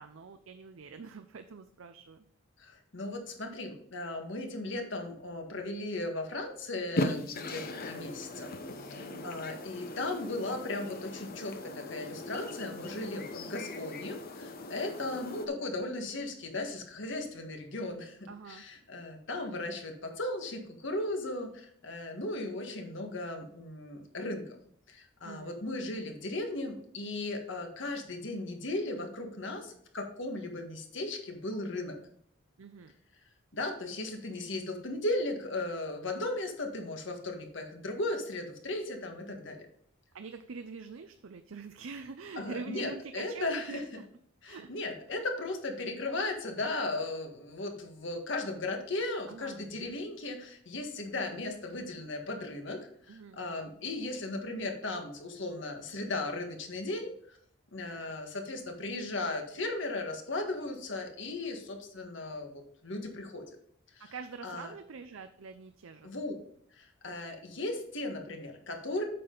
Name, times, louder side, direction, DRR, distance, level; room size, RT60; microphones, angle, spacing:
voice 1, 0.0-2.3 8.9-9.3 18.3-18.6 25.2-25.6 32.6-32.9 40.1-44.0 44.5-44.7 49.3-49.6 53.1-53.4 64.0-66.1, right 4 dB, 75° right, 8 dB, 0.5 m, -45 dB
voice 2, 2.6-8.5 8.8-24.6 24.9-32.0 33.5-39.7 42.3-43.8 44.4-52.8 53.1-57.4 57.7-63.4 63.9-64.1 64.4-64.7 66.0-66.3 66.7-69.0, left 2 dB, 65° left, 4 dB, 1.7 m, -36 dB
sound 1, 7.0-15.5, left 1 dB, 50° left, 0.9 m, -39 dB
8.5 x 6.8 x 3.9 m, 0.63 s
head